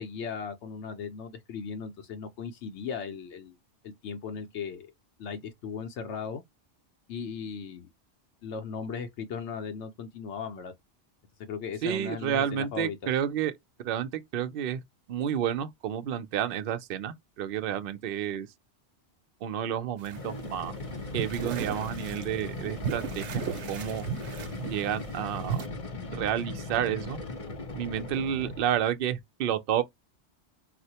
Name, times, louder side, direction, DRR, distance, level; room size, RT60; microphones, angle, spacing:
voice 1, 0.0-3.6 3.8-4.9 5.2-6.4 7.1-7.9 8.4-10.7 11.5-13.0, left 6 dB, 85° left, 0.9 m, -37 dB
voice 2, 11.8-13.5 13.8-14.8 15.1-18.5 19.4-20.7 21.1-23.4 23.7-24.0 24.6-25.6 26.1-27.2 27.7-29.8, right 9 dB, 60° right, 0.7 m, -30 dB
sound 1, 20.0-28.8, left 2 dB, 35° left, 0.6 m, -38 dB
sound 2, 20.0-25.7, right 7 dB, 85° right, 0.9 m, -35 dB
4.2 x 2.1 x 2.7 m
omnidirectional pair, 1.2 m